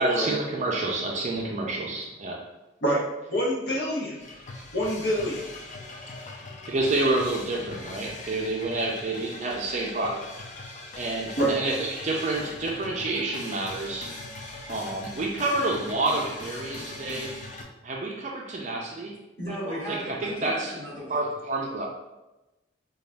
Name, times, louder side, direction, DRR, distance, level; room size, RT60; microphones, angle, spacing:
voice 1, 0.0-2.4 6.7-10.2 11.0-14.2 14.7-17.5 17.8-19.2 19.4-20.8 21.1-21.9, right 2 dB, 35° right, 0 dB, 0.4 m, -29 dB
voice 2, 3.3-4.1 4.7-5.4 11.4-11.5, equal, 55° left, -4 dB, 0.9 m, -25 dB
sound 1, 4.2-17.6, left 2 dB, 40° left, 0.4 m, -41 dB
voice 3, 19.4-21.2, equal, 15° left, -9 dB, 1.3 m, -36 dB
3.9 x 2.3 x 3.3 m, 1.0 s
head